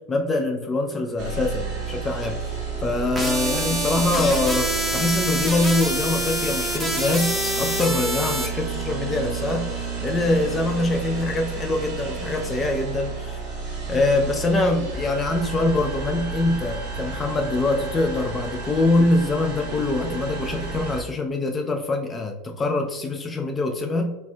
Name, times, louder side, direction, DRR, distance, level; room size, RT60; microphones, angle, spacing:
voice 1, 0.1-2.4 2.8-9.7 10.0-13.4 13.9-24.1, left 2 dB, 20° left, 3 dB, 0.4 m, -24 dB
sound 1, 1.2-21.0, right 5 dB, 60° right, 0.9 m, -32 dB
sound 2, 3.2-8.5, right 1 dB, 5° right, 0.7 m, -26 dB
3.3 x 2.5 x 2.2 m, 1.0 s
hypercardioid pair, 100°, 0 cm